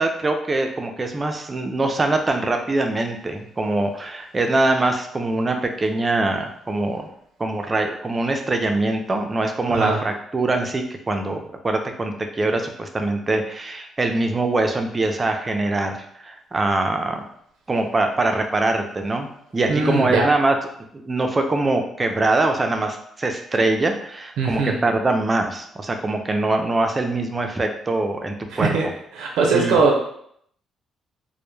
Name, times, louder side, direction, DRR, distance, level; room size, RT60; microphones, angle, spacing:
voice 1, 0.0-7.1 7.4-17.2 17.7-20.6 20.9-28.7 29.5-29.8, right 2 dB, 25° right, 4 dB, 0.4 m, -23 dB
voice 2, 19.7-20.3 24.4-24.8 28.5-28.9 29.2-30.0, right 4 dB, 90° right, 0 dB, 0.4 m, -20 dB
2.1 x 2.0 x 3.0 m, 0.68 s
cardioid pair, 90°, 0 cm